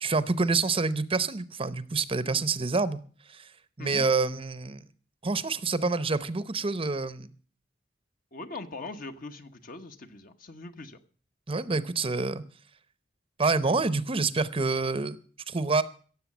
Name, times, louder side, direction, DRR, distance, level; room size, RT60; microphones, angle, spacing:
voice 1, 0.0-3.0 3.3-3.5 3.8-4.8 5.2-7.3 11.5-12.4 13.4-15.2 15.5-15.8, right 3 dB, 30° right, 15 dB, 0.8 m, -27 dB
voice 2, 8.3-11.0, left 2 dB, 50° left, 7 dB, 1.2 m, -41 dB
16.5 x 7.5 x 7.2 m, 0.42 s
head